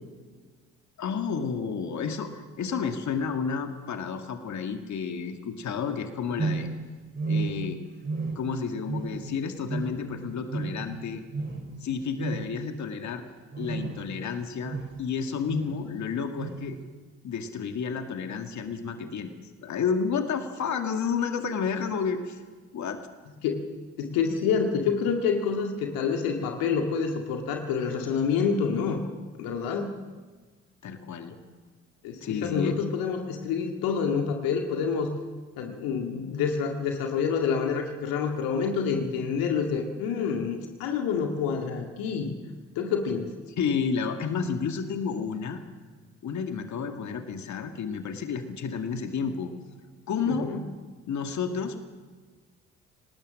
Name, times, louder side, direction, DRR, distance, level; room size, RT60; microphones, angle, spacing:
voice 1, 1.0-6.7 7.3-7.8 8.4-11.2 11.8-13.2 13.6-16.8 17.2-22.4 22.7-23.0 30.8-31.4 32.2-32.8 43.6-45.6 46.2-49.5 50.1-50.5 51.1-51.8, left 6 dB, 50° left, 6 dB, 2.1 m, -31 dB
sound 1, 6.4-6.8 7.1-7.7 8.0-8.6 8.9-9.4 9.7-10.1 10.5-10.9 11.3-11.6 12.2-12.6 13.5-14.1 14.6-15.0 15.5-15.8 16.4-16.6, right 3 dB, 30° right, 6.8 m, -32 dB
voice 2, 24.0-29.0 29.4-29.9 32.0-35.1 35.6-42.3 42.8-43.3 50.3-50.7, left 6 dB, 65° left, 3 dB, 2.1 m, -27 dB
26.0 x 19.0 x 6.4 m, 1.4 s
figure-of-eight pair, 45°, 37 cm